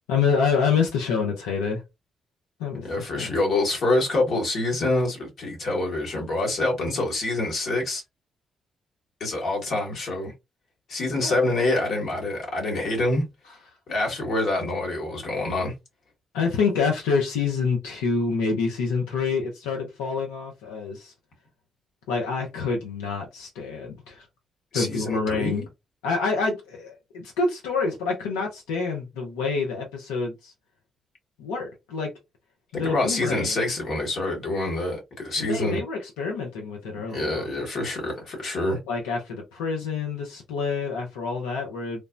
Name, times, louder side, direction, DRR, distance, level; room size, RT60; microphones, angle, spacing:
voice 1, 0.1-1.8 2.6-3.4 11.2-11.4 16.3-21.1 22.1-24.3 24.7-25.6 26.0-30.5 31.4-32.1 32.7-33.6 35.4-37.5 38.9-42.0, left 5 dB, 85° left, 0.5 m, -27 dB
voice 2, 2.8-8.0 9.2-10.3 10.9-13.2 13.9-15.7 24.7-25.6 32.8-35.8 37.1-38.8, left 2 dB, 65° left, 1.1 m, -26 dB
3.2 x 2.0 x 2.5 m
hypercardioid pair, 45°, 0 cm